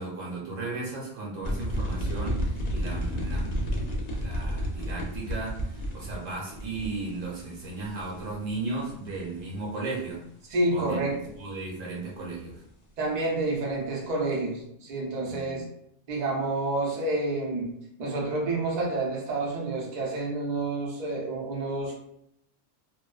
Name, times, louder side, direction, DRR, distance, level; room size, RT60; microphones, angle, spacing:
voice 1, 0.0-10.2 10.7-11.0 11.4-12.6 15.3-15.6, right 3 dB, 80° right, -3 dB, 1.2 m, -35 dB
sound 1, 1.4-9.4, equal, 70° left, 0.4 m, -31 dB
voice 2, 10.5-11.2 13.0-15.6 16.1-17.7 18.0-21.9, right 2 dB, 50° right, -2 dB, 0.5 m, -29 dB
2.6 x 2.1 x 2.3 m, 0.76 s
omnidirectional pair, 1.3 m